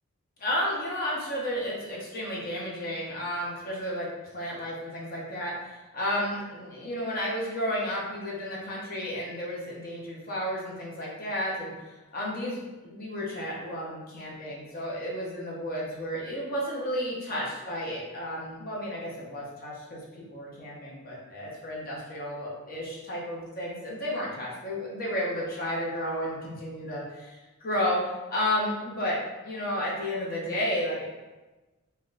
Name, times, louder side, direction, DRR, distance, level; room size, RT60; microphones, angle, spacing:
voice 1, 0.4-4.1 4.3-20.0 20.3-29.2 29.4-31.1, equal, 45° left, -5 dB, 0.7 m, -32 dB
3.4 x 2.2 x 2.4 m, 1.1 s
head